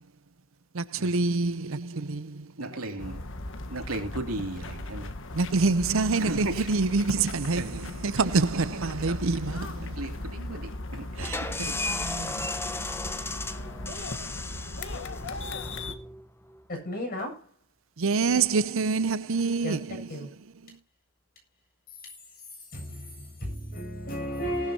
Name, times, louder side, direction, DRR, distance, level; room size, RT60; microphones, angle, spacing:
voice 1, 0.7-2.5 5.3-10.0 11.2-12.5 18.0-20.8, right 4 dB, 65° right, 0.7 m, -27 dB
voice 2, 2.6-3.2 3.7-5.1 6.2-6.7 7.6-7.8 10.0-11.3, right 2 dB, 85° right, 3.0 m, -35 dB
sound 1, 3.0-15.9, left 2 dB, 65° left, 1.5 m, -38 dB
sound 2, 11.2-16.6, left 2 dB, 10° left, 1.1 m, -35 dB
voice 3, 16.7-17.4 19.6-20.3 22.7-24.7, equal, 45° left, 7.8 m, -34 dB
19.0 x 11.5 x 2.9 m
head